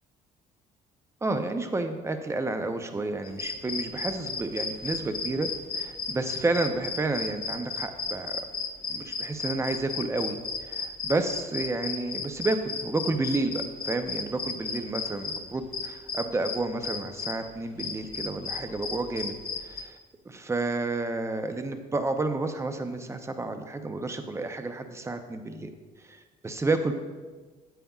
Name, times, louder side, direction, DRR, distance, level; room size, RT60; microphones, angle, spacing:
voice 1, 1.2-5.5 5.7-8.4 8.9-19.3 19.6-20.0 20.2-25.7 26.0-26.9, right 2 dB, 15° right, 7 dB, 0.6 m, -30 dB
sound 1, 3.2-17.4 17.8-19.8, left 5 dB, 60° left, 1.0 m, -34 dB
9.1 x 8.3 x 2.4 m, 1.4 s
cardioid pair, 110°, 17 cm